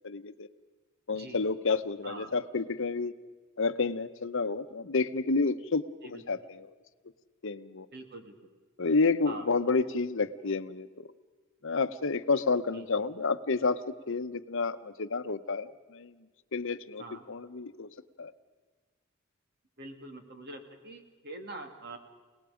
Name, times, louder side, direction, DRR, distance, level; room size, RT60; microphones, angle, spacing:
voice 1, 0.0-0.5 1.1-3.1 3.6-6.7 7.4-7.9 8.8-11.1 11.6-16.1 16.5-17.9 18.2-18.3, left 4 dB, 65° left, 10 dB, 0.9 m, -30 dB
voice 2, 1.1-1.4 2.0-2.3 6.0-6.2 7.9-8.3 9.2-9.5 12.7-12.9 17.0-17.2 19.8-22.0, right 2 dB, 50° right, 5 dB, 2.6 m, -44 dB
30.0 x 19.0 x 5.1 m, 1.4 s
head